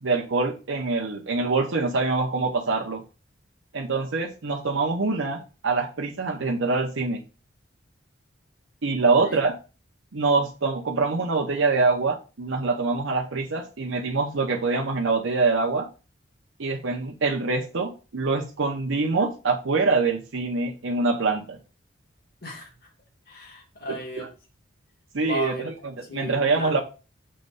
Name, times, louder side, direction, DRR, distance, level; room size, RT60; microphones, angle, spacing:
voice 1, 0.0-3.0 3.7-7.2 8.8-9.6 10.1-15.9 16.6-21.6 24.2-24.3 25.1-26.8, right 3 dB, 85° right, 0 dB, 0.9 m, -25 dB
voice 2, 22.4-22.7 23.3-24.3 25.2-25.7 26.1-26.8, equal, 50° left, 0 dB, 2.1 m, -35 dB
6.8 x 3.1 x 5.4 m, 0.32 s
head